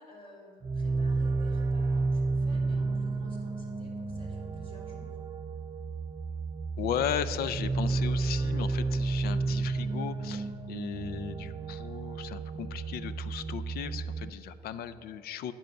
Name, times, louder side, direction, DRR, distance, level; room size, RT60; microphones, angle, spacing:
voice 1, 0.0-5.3, left 1 dB, 35° left, -2 dB, 2.4 m, -53 dB
sound 1, 0.6-14.3, right 3 dB, 20° right, 0.4 m, -31 dB
voice 2, 6.8-15.5, left 9 dB, 65° left, 14 dB, 0.5 m, -36 dB
9.0 x 5.3 x 6.5 m, 2.3 s
cardioid pair, 110°, 17 cm